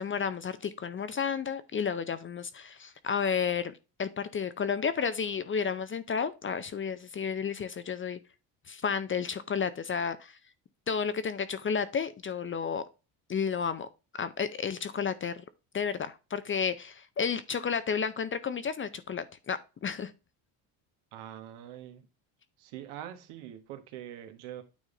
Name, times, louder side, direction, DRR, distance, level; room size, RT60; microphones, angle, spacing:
voice 1, 0.0-3.7 4.0-8.2 8.7-10.4 10.9-12.8 13.3-13.9 14.2-15.4 15.7-20.1, left 6 dB, 25° left, 0.5 m, -32 dB
voice 2, 21.1-22.1 22.6-24.6, right 11 dB, 80° right, 1.4 m, -44 dB
9.2 x 3.6 x 3.8 m
cardioid pair, 105°, 49 cm